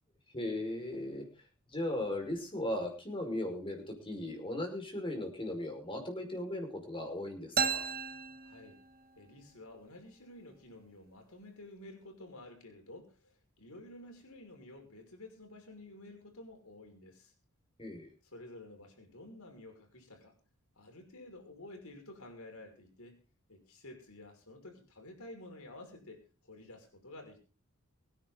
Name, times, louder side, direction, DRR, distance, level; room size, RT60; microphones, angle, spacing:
voice 1, 0.3-1.3 1.7-7.9 17.8-18.1, left 1 dB, 25° left, 3 dB, 5.2 m, -37 dB
sound 1, 7.6-9.3, right 6 dB, 45° right, 1.3 m, -34 dB
voice 2, 8.4-8.8 9.2-17.3 18.2-20.3 20.8-23.2 23.5-27.4, left 1 dB, 75° left, 3 dB, 5.7 m, -51 dB
24.0 x 10.0 x 3.9 m, 0.34 s
head